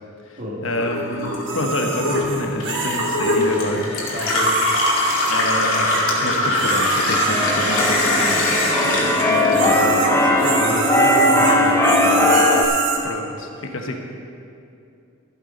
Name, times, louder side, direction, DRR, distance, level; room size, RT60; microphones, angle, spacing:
voice 1, 0.3-3.9 5.3-10.4 13.0-13.9, left 1 dB, 65° left, 3 dB, 1.2 m, -28 dB
Gurgling / Water tap faucet / Sink (filling or washing), 0.6-10.2 10.5-11.4, left 2 dB, 90° left, 2.3 m, -23 dB
sound 1, 1.5-3.4 4.2-6.2 6.5-13.0, right 3 dB, 60° right, 1.4 m, -26 dB
voice 2, 4.1-4.6 10.4-12.3, left 1 dB, 40° right, -4 dB, 2.4 m, -29 dB
Keyboard (musical), 6.8-12.6, left 1 dB, 10° left, 0.9 m, -19 dB
13.5 x 8.2 x 5.3 m, 2.6 s
head